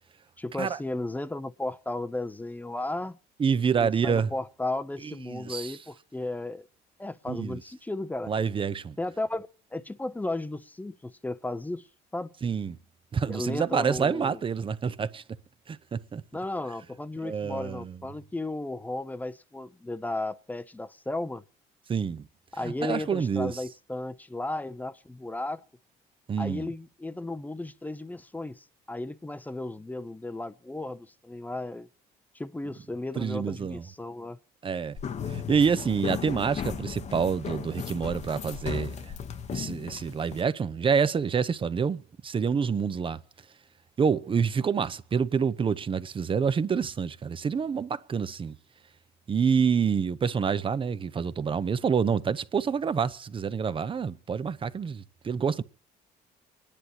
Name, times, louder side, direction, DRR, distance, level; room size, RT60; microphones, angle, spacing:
voice 1, 0.4-3.2 3.8-6.6 7.0-8.3 9.0-11.8 12.1-12.3 13.3-14.4 16.3-21.4 22.5-25.6 26.4-31.9 32.3-34.4, left 2 dB, 10° left, 0.7 m, -34 dB
voice 2, 3.4-4.3 5.2-5.8 7.3-7.6 8.3-9.0 12.4-12.8 13.1-15.2 15.7-16.2 17.2-18.0 21.9-22.3 22.6-23.5 26.3-26.7 33.2-33.8 34.6-35.0 35.3-39.1 39.5-43.2 44.0-48.5 49.3-55.6, right 6 dB, 30° right, 0.7 m, -27 dB
sound 1, 35.0-40.4, left 7 dB, 40° left, 0.9 m, -36 dB
28.0 x 10.5 x 2.9 m
cardioid pair, 110°, 17 cm